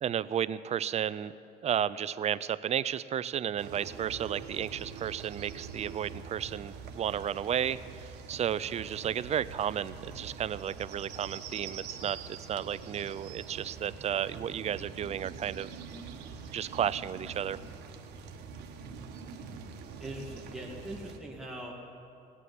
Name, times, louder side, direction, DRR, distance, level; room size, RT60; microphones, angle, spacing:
voice 1, 0.0-1.3 1.6-15.7 16.5-17.6, right 9 dB, 40° right, 16 dB, 0.5 m, -33 dB
sound 1, 3.6-21.2, right 6 dB, 80° right, 1.3 m, -45 dB
voice 2, 20.0-21.7, right 1 dB, 5° right, -3 dB, 2.1 m, -41 dB
18.0 x 8.4 x 9.5 m, 2.7 s
cardioid pair, 110°, 17 cm